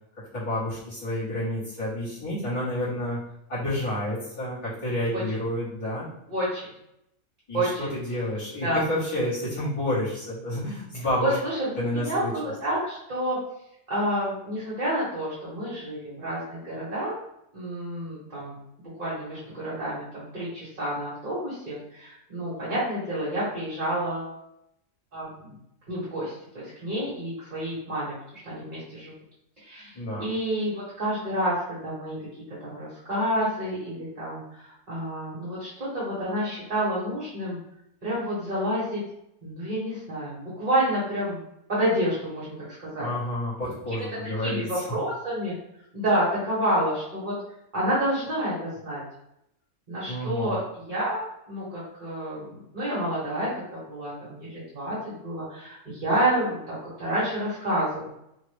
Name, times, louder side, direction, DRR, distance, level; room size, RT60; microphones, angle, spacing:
voice 1, 0.3-6.1 7.5-11.4 11.8-12.3 29.9-30.3 43.0-44.8 50.1-50.6, left 1 dB, 25° left, -10 dB, 1.4 m, -30 dB
voice 2, 6.3-6.7 7.5-7.9 8.6-8.8 11.2-13.4 13.9-17.2 17.5-24.3 25.1-25.5 25.9-28.1 28.4-29.1 29.6-29.9 30.2-32.2 32.6-37.6 38.0-39.0 39.4-41.4 41.7-43.1 44.4-45.5 45.9-47.3 47.7-49.0 49.9-58.1, right 1 dB, 40° right, -9 dB, 1.2 m, -29 dB
3.0 x 2.5 x 3.3 m, 0.80 s
omnidirectional pair, 1.4 m